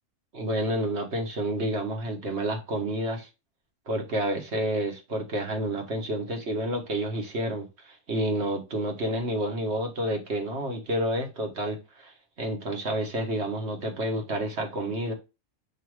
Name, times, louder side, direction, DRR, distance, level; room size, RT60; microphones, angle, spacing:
voice 1, 0.3-3.3 3.9-15.1, right 1 dB, 50° right, 1.5 m, -29 dB
7.1 x 2.8 x 4.8 m
omnidirectional pair, 1.6 m